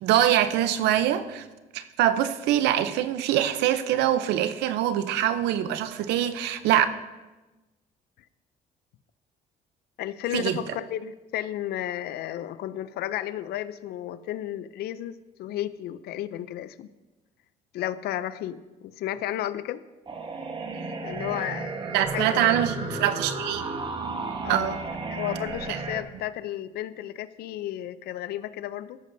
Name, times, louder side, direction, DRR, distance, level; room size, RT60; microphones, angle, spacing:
voice 1, 0.0-1.4 1.7-6.9 10.3-10.6 21.9-23.7 24.5-24.8 25.7-25.8, right 11 dB, 90° right, 12 dB, 0.7 m, -24 dB
voice 2, 10.0-16.9 17.7-19.8 21.0-21.8 22.1-22.4 24.4-29.0, left 12 dB, 70° left, 15 dB, 0.5 m, -33 dB
sound 1, 20.1-26.0, right 3 dB, 30° right, 1.2 m, -33 dB
13.5 x 11.5 x 2.7 m, 1.1 s
cardioid pair, 110°, 17 cm